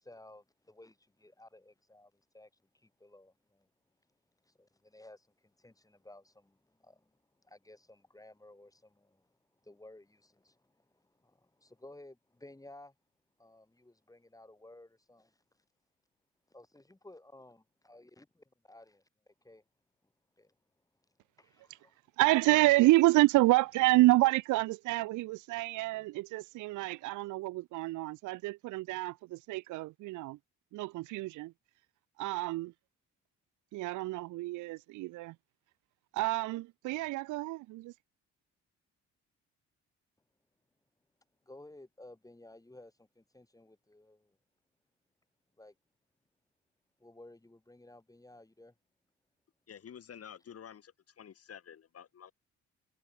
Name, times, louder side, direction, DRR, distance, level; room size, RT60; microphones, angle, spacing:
voice 1, 0.0-3.7 4.4-9.4 9.6-12.9 13.4-15.4 16.5-19.6 20.4-20.5 21.4-22.0 41.4-44.4 45.6-45.7 47.0-48.7, left 1 dB, 10° left, 6.8 m, -56 dB
voice 2, 22.2-30.4 30.7-31.5 32.2-32.7 33.7-35.3 36.1-37.9, right 19 dB, 80° right, 0.5 m, -28 dB
voice 3, 49.7-52.3, left 8 dB, 50° left, 2.6 m, -50 dB
cardioid pair, 90°, 30 cm